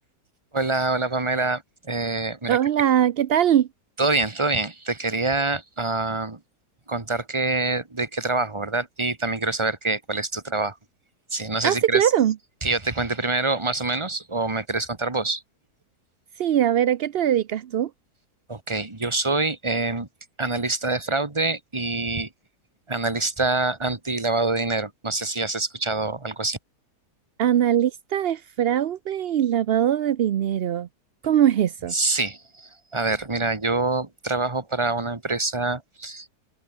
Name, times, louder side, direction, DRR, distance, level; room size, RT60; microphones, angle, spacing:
voice 1, 0.5-2.6 4.0-6.4 6.9-10.8 11.3-12.1 12.6-15.4 18.5-20.1 20.4-22.3 22.9-26.6 31.9-36.4, right 3 dB, 20° right, 1.7 m, -26 dB
voice 2, 2.5-3.7 11.6-12.3 16.4-17.9 27.4-30.9 31.2-31.9, right 10 dB, 65° right, 0.6 m, -21 dB
open air
omnidirectional pair, 1.7 m